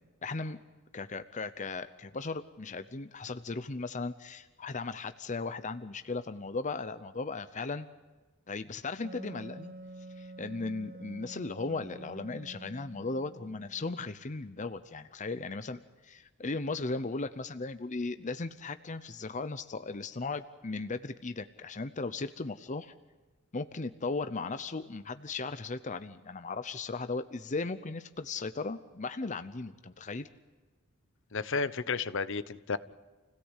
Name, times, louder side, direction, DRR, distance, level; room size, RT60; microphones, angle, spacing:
voice 1, 0.2-0.6 0.9-7.9 8.5-9.7 10.2-22.9 23.5-30.3, left 3 dB, 35° left, 11 dB, 0.7 m, -37 dB
Wind instrument woodwind instrument, 9.0-14.4, right 2 dB, 45° right, 0.9 m, -48 dB
voice 2, 31.3-32.8, left 4 dB, 65° left, 14 dB, 1.0 m, -32 dB
28.5 x 17.5 x 8.2 m, 1.3 s
head